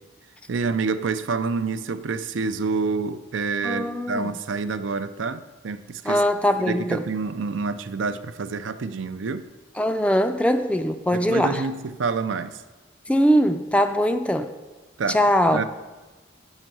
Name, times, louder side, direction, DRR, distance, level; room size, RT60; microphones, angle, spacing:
voice 1, 0.5-6.2 6.6-9.5 11.1-12.6 15.0-15.2 15.5-15.6, right 4 dB, 80° right, 11 dB, 0.5 m, -27 dB
voice 2, 3.6-4.3 6.0-7.0 9.8-11.7 13.1-14.5 15.1-15.6, equal, 5° left, 8 dB, 0.4 m, -21 dB
8.1 x 5.4 x 7.5 m, 1.2 s
head